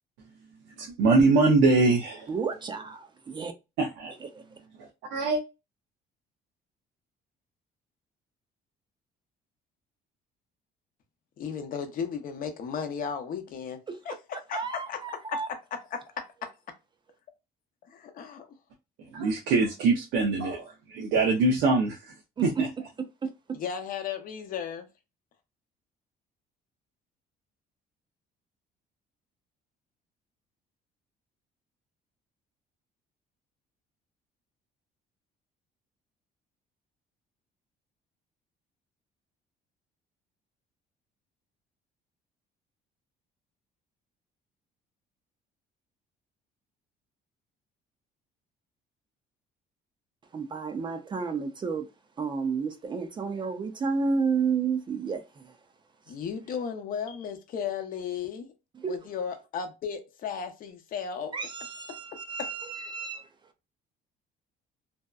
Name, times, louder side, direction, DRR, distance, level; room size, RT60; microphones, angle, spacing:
voice 1, 0.8-2.3 3.8-4.1 5.1-5.4 19.1-22.0 22.4-22.7, right 3 dB, 90° right, 0.6 m, -23 dB
voice 2, 2.3-3.5 4.2-4.4 13.9-14.0 14.3-15.5 22.4-22.6 23.0-23.6 50.3-51.9 52.2-55.6 58.8-59.0 61.3-63.3, right 5 dB, 30° right, 0.4 m, -31 dB
voice 3, 11.4-14.6 14.9-15.0 15.5-16.5 17.9-18.5 23.5-24.9 56.1-58.5 58.9-61.3 62.4-62.5, left 7 dB, 55° left, 0.6 m, -35 dB
2.7 x 2.1 x 2.3 m
cardioid pair, 110°, 17 cm